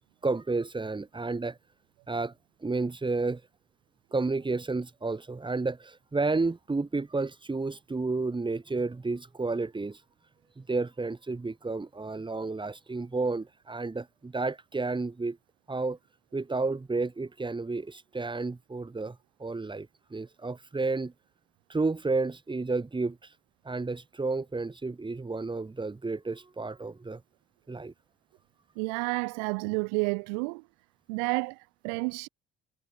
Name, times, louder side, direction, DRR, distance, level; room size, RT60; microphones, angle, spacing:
voice 1, 0.2-1.6 2.1-2.3 2.6-3.4 4.1-10.0 10.6-15.4 15.7-16.0 16.3-21.1 21.7-23.3 23.6-27.2 27.7-27.9, right 3 dB, 20° right, 7.2 m, -31 dB
voice 2, 28.8-30.6 31.1-32.3, right 36 dB, 90° right, 1.5 m, -30 dB
supercardioid pair, 70°, 21 cm